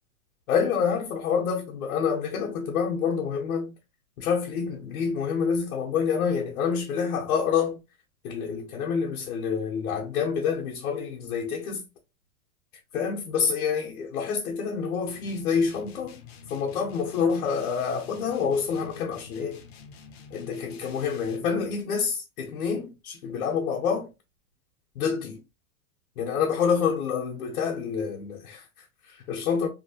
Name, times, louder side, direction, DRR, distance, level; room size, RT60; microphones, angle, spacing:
voice 1, 0.5-3.8 4.2-7.8 8.2-11.8 12.9-16.2 16.5-19.6 20.3-24.1 24.9-25.4 26.2-29.7, left 6 dB, 80° left, 0.9 m, -27 dB
sound 1, 15.1-21.5, left 5 dB, 50° left, 0.5 m, -48 dB
2.9 x 2.4 x 2.7 m
supercardioid pair, 175°, 42 cm